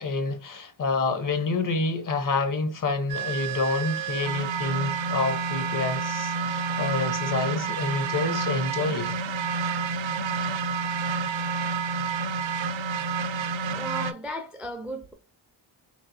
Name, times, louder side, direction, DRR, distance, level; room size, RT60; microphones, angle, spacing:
voice 1, 0.0-9.1, left 3 dB, 45° left, 0.6 m, -28 dB
sound 1, 3.1-14.1, right 5 dB, 75° right, 0.5 m, -29 dB
voice 2, 13.7-15.1, equal, ahead, 0.3 m, -35 dB
4.0 x 2.9 x 2.6 m
wide cardioid pair, 155°, 46 cm